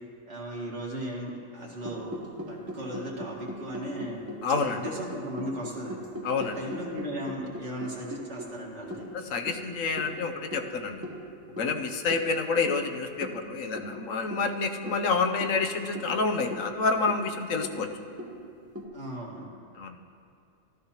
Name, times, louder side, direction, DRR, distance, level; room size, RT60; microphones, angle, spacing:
voice 1, 0.3-2.1 2.5-4.2 4.7-6.0 6.4-9.1 18.9-19.5, equal, 60° right, -4 dB, 2.2 m, -37 dB
sound 1, 1.8-18.8, equal, 15° right, 0.8 m, -40 dB
voice 2, 4.4-4.8 6.2-6.6 9.1-11.0 11.6-17.9 19.8-20.0, left 4 dB, 75° left, 6 dB, 1.1 m, -28 dB
13.5 x 13.0 x 2.9 m, 2.3 s
omnidirectional pair, 1.4 m